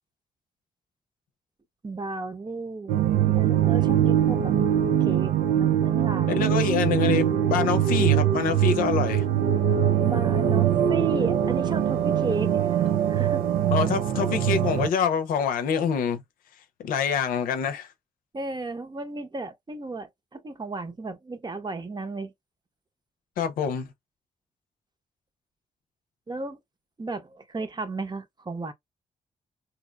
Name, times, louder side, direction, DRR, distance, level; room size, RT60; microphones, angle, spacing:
voice 1, 1.8-4.5 5.0-6.4 7.6-7.8 10.0-13.4 18.3-22.3 26.3-26.6 27.0-28.7, right 3 dB, 30° right, 0.8 m, -34 dB
sound 1, 2.9-14.9, right 10 dB, 85° right, 0.4 m, -22 dB
voice 2, 6.4-9.2 13.7-16.2 16.8-17.9 23.4-23.9, left 7 dB, 85° left, 0.6 m, -26 dB
3.9 x 2.8 x 2.2 m
supercardioid pair, 50°, 14 cm